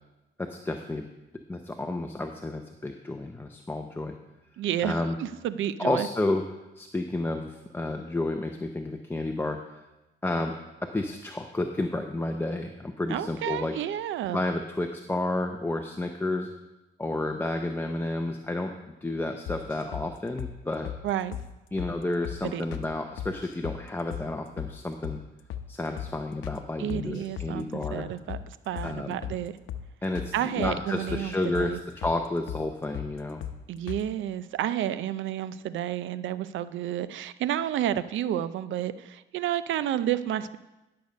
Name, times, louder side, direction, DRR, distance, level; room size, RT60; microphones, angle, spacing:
voice 1, 0.4-1.1 1.5-4.1 4.8-5.2 5.8-6.4 6.8-9.8 10.2-10.6 10.8-13.8 14.3-16.5 17.0-20.9 21.7-25.2 25.7-28.1 28.8-29.2 30.0-33.4, left 2 dB, 10° left, 4 dB, 0.7 m, -31 dB
voice 2, 4.6-6.1 13.1-14.4 21.0-21.4 22.5-22.6 26.8-28.4 28.7-29.5 30.3-31.8 33.7-40.6, right 11 dB, 75° right, 14 dB, 0.6 m, -30 dB
sound 1, 19.5-20.1 20.4-20.5 20.8-21.0 21.3-21.5 21.8-21.9 22.2-22.4 22.7-22.9 23.2-23.8 24.1-24.3 24.6-24.7 25.0-25.2 25.5-25.7 26.0-26.1 26.4-26.6 26.9-27.5 27.8-28.0 28.3-28.5 28.8-28.9 29.2-29.4 29.7-29.8 30.1-30.3 30.6-31.2 31.5-31.7 32.0-32.2 32.5-32.6 32.9-33.1 33.4-33.6 33.9-34.0, left 10 dB, 85° left, 0.8 m, -36 dB
11.5 x 6.7 x 5.2 m, 1.0 s
cardioid pair, 90°, 20 cm